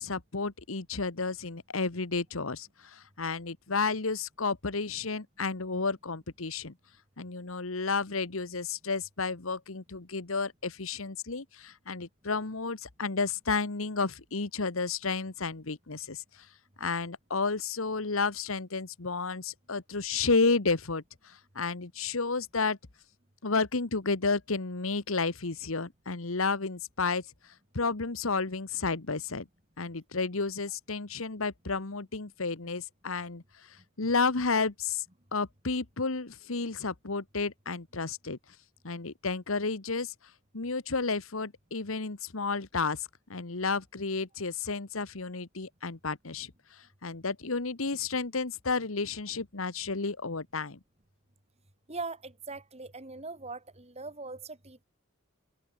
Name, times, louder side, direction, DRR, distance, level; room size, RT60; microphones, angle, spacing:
voice 1, 0.0-6.7 7.2-16.2 16.8-22.8 23.4-27.2 27.7-29.5 29.8-33.4 34.0-35.0 35.3-38.4 38.8-40.1 40.5-46.5 47.0-50.8, left 4 dB, 75° left, 1.4 m, -31 dB
voice 2, 51.9-54.8, right 3 dB, 30° right, 4.0 m, -41 dB
open air
head